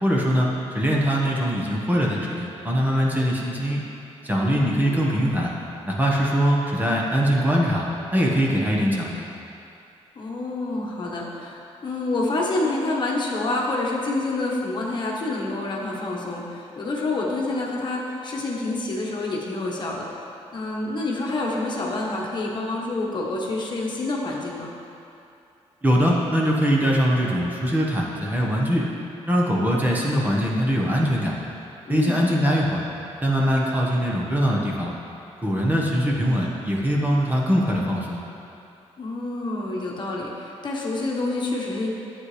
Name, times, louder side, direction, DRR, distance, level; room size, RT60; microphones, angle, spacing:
voice 1, 0.0-3.8 4.2-5.5 5.8-7.9 8.1-9.3 25.8-28.9 29.3-31.3 31.9-32.8 33.2-34.9 35.4-38.2, equal, 15° right, -3 dB, 1.2 m, -22 dB
voice 2, 4.3-5.0 10.2-20.1 20.5-24.7 31.9-32.2 39.0-41.9, left 2 dB, 45° left, -2 dB, 1.3 m, -28 dB
10.5 x 7.9 x 3.3 m, 2.7 s
cardioid pair, 105°, 11 cm